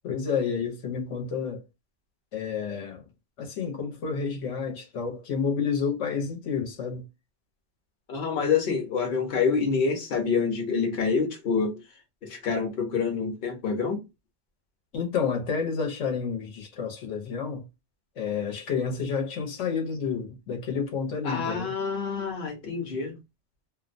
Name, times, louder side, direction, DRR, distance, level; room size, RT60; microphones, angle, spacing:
voice 1, 0.0-1.6 2.3-3.1 3.4-7.0 14.9-17.6 18.2-21.7, left 6 dB, 85° left, 1.1 m, -30 dB
voice 2, 8.1-11.8 12.2-14.0 21.2-23.1, left 5 dB, 55° left, 0.9 m, -27 dB
2.6 x 2.1 x 2.5 m
omnidirectional pair, 1.2 m